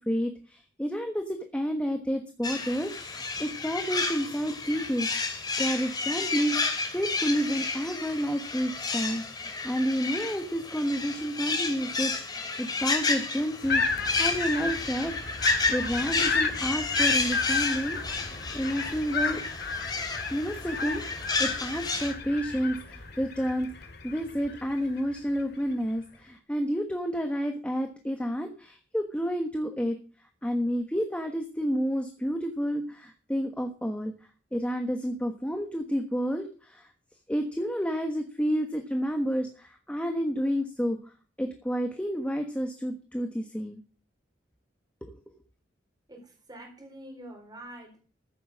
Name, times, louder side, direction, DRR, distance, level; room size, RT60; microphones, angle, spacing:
voice 1, 0.0-5.1 5.6-15.1 15.7-18.0 18.5-19.4 20.3-30.0 30.4-34.1 34.5-36.9 37.3-41.0 41.4-43.8 45.0-45.1, equal, 5° left, 4 dB, 1.3 m, -30 dB
sound 1, 2.4-22.1, left 4 dB, 20° left, 2.5 m, -31 dB
sound 2, 13.6-25.2, left 4 dB, 60° left, 2.1 m, -32 dB
voice 2, 46.1-48.0, right 1 dB, 20° right, 3 dB, 4.0 m, -46 dB
14.5 x 7.8 x 6.4 m, 0.38 s
head